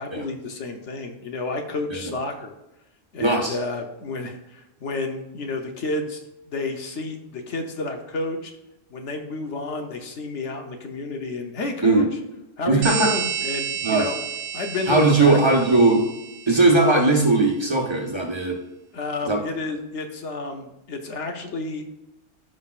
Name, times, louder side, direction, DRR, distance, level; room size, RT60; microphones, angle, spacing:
voice 1, 0.0-2.6 3.1-8.5 8.9-12.1 12.6-14.2 14.5-15.6 18.9-21.8, left 3 dB, 65° left, 4 dB, 1.1 m, -30 dB
voice 2, 3.2-3.6 11.8-12.1 12.7-13.1 13.8-14.0 14.9-16.0 16.5-18.5 19.2-19.4, right 3 dB, 20° right, 0 dB, 1.2 m, -18 dB
sound 1, 12.8-17.1, right 8 dB, 80° right, 1.2 m, -31 dB
14.0 x 5.4 x 2.4 m, 0.94 s
omnidirectional pair, 1.3 m